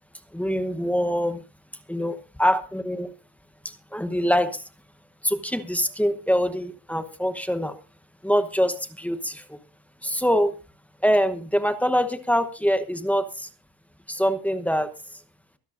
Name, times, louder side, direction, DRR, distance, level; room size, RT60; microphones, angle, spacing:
voice 1, 0.3-1.4 1.9-3.1 3.6-4.6 5.2-7.8 8.2-9.6 10.0-10.5 11.0-13.5 14.1-14.9, equal, 5° left, 9 dB, 0.9 m, -24 dB
23.5 x 11.5 x 2.5 m, 0.31 s
cardioid pair, 170°, 43 cm